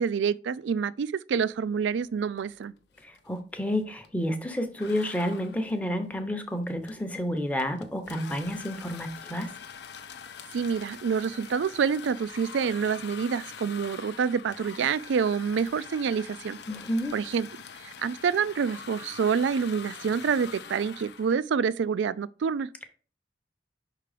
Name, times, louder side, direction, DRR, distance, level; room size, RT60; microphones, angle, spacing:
voice 1, 0.0-2.7 10.5-16.6 17.1-17.5 17.8-22.7, right 6 dB, 75° right, 0.3 m, -27 dB
sound 1, 2.4-2.6 2.9-4.2 4.8-21.4, left 7 dB, 60° left, 0.5 m, -44 dB
voice 2, 3.0-9.5 16.7-17.1, equal, 10° left, 0.7 m, -30 dB
5.6 x 3.7 x 4.9 m
head